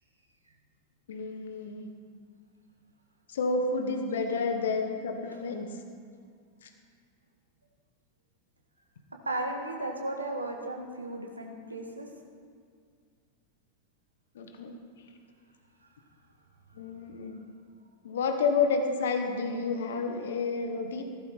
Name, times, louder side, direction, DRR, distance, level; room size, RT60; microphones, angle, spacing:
voice 1, 1.1-1.9 3.3-5.7 6.6-6.7 14.3-14.8 16.7-17.4 18.0-21.0, left 4 dB, 60° left, 5 dB, 1.4 m, -30 dB
voice 2, 9.3-12.1, right 2 dB, 80° right, 2 dB, 1.7 m, -35 dB
15.5 x 12.5 x 4.3 m, 2.2 s
figure-of-eight pair, 90°, 0 cm